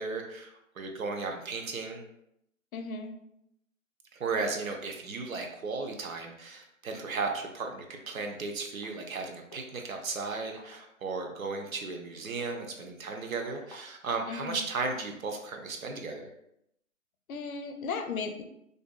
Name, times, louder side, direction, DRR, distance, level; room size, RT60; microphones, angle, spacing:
voice 1, 0.0-2.0 4.1-16.3, right 4 dB, 75° right, 3 dB, 0.6 m, -35 dB
voice 2, 2.7-3.1 14.3-14.6 17.3-18.4, left 4 dB, 80° left, 6 dB, 0.5 m, -36 dB
sound 1, 8.0-8.1 8.8-8.9 9.5-9.8 10.5-10.7 11.5-11.6 12.2-14.3 15.0-15.7, left 1 dB, 30° left, 0.4 m, -52 dB
2.5 x 2.2 x 2.4 m, 0.78 s
figure-of-eight pair, 155°, 41 cm